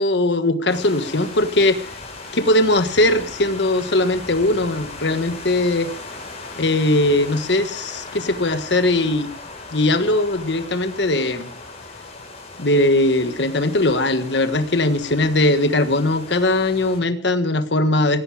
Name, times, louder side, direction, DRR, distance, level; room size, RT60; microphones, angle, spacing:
voice 1, 0.0-1.9 2.3-5.9 6.5-9.3 9.7-11.5 12.6-18.2, left 2 dB, 70° left, 10 dB, 1.5 m, -19 dB
sound 1, 0.7-17.0, left 3 dB, 35° left, 5.5 m, -37 dB
17.5 x 17.0 x 4.9 m, 0.43 s
head